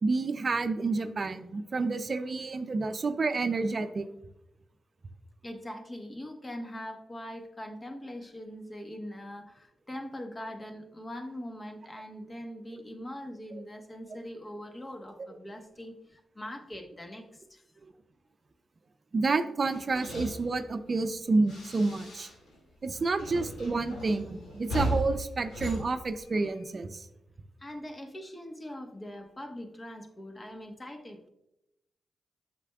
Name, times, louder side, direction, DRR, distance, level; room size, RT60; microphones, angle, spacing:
voice 1, 0.0-4.1 19.1-22.3 22.8-27.1, right 3 dB, 50° right, 9 dB, 0.5 m, -29 dB
voice 2, 5.4-17.6 27.6-31.3, equal, 30° left, 4 dB, 1.2 m, -42 dB
sound 1, 19.6-22.6 22.8-26.7, equal, 90° left, 2.1 m, -37 dB
8.1 x 5.9 x 2.3 m, 0.87 s
supercardioid pair, 50°, 0 cm